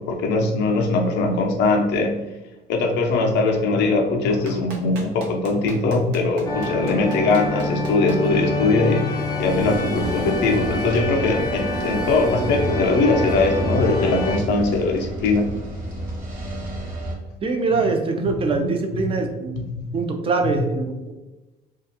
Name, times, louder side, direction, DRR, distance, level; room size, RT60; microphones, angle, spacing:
voice 1, 0.0-2.1 2.7-9.1 9.4-15.5 17.7-17.8 18.2-19.1 19.5-19.7 20.4-20.6, left 3 dB, 80° left, 3 dB, 0.4 m, -21 dB
Clapping, 4.5-8.2 9.7-9.8, right 3 dB, 80° right, 0.6 m, -39 dB
sound 1, 6.5-14.4, left 1 dB, 25° left, 0.4 m, -27 dB
sound 2, 9.4-17.2, right 1 dB, 55° right, 0.8 m, -31 dB
voice 2, 17.4-19.6 19.9-21.1, right 3 dB, 35° right, 5 dB, 0.4 m, -23 dB
2.4 x 2.2 x 2.7 m, 1.0 s
cardioid pair, 110°, 17 cm